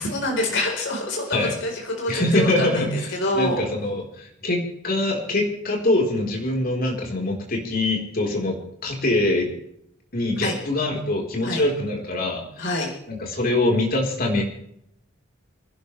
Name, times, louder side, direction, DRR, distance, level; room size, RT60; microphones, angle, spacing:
voice 1, 0.0-2.9 3.1-3.6 10.4-10.5 11.4-11.6 12.6-12.9, left 1 dB, 65° left, 0 dB, 4.3 m, -26 dB
voice 2, 2.1-9.5 10.1-12.7 13.1-14.4, left 2 dB, 45° left, 0 dB, 4.2 m, -24 dB
28.5 x 11.5 x 3.4 m, 0.75 s
head